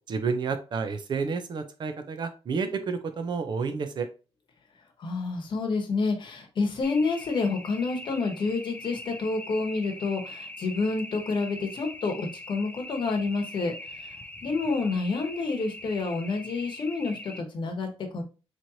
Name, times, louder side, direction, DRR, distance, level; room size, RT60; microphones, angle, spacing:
voice 1, 0.1-4.1, right 5 dB, 45° right, 9 dB, 0.6 m, -30 dB
voice 2, 5.0-13.7 14.0-14.1 14.4-18.2, left 3 dB, 45° left, 4 dB, 1.1 m, -29 dB
sound 1, 6.8-17.4, left 2 dB, 15° left, 0.5 m, -42 dB
4.1 x 3.1 x 2.7 m, 0.33 s
cardioid pair, 150°, 11 cm